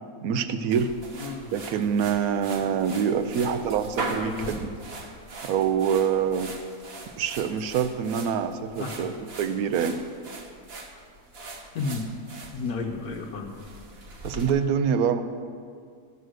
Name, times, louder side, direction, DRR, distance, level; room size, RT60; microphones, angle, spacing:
voice 1, 0.2-0.9 1.5-4.7 5.4-6.5 7.2-10.0 14.2-15.2, right 7 dB, 75° right, 10 dB, 1.1 m, -25 dB
sound 1, 0.7-14.5, right 2 dB, 45° right, 1.1 m, -40 dB
voice 2, 1.2-1.5 3.4-3.6 4.2-4.6 8.8-9.1 10.9-11.0 11.7-12.1 12.5-13.6, left 4 dB, 80° left, 0 dB, 1.3 m, -33 dB
14.0 x 6.2 x 6.5 m, 2.1 s
omnidirectional pair, 1.6 m